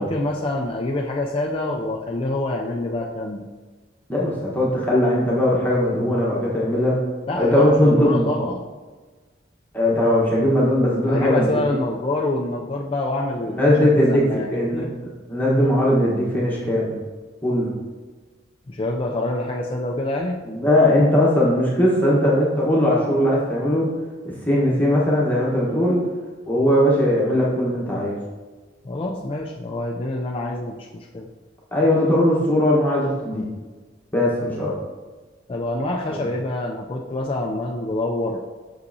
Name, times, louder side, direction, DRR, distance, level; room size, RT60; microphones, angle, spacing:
voice 1, 0.0-3.5 7.3-8.6 11.1-14.9 18.7-20.4 28.8-31.3 35.5-38.4, left 2 dB, 30° left, -1 dB, 0.4 m, -26 dB
voice 2, 4.1-6.9 7.3-8.3 9.7-11.6 13.5-14.2 14.5-16.9 17.4-17.7 20.5-23.9 24.5-26.0 26.5-28.2 31.7-33.5 34.1-34.7 36.1-36.2, left 1 dB, 10° left, -6 dB, 1.2 m, -19 dB
6.4 x 5.4 x 2.7 m, 1.3 s
head